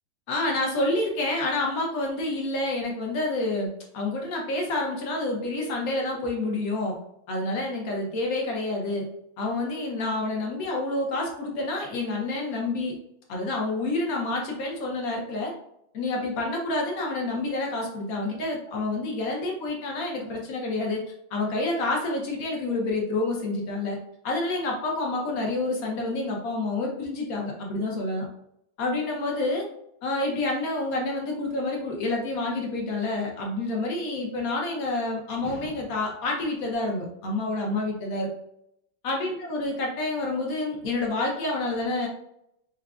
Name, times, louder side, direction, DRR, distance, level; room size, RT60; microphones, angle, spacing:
voice 1, 0.3-3.7 3.9-7.0 7.3-9.0 9.4-13.0 13.3-15.5 15.9-21.0 21.3-24.0 24.2-28.3 28.8-29.7 30.0-38.3 39.0-42.1, left 2 dB, 60° left, 0 dB, 1.0 m, -28 dB
4.7 x 2.2 x 2.3 m, 0.76 s
omnidirectional pair, 2.2 m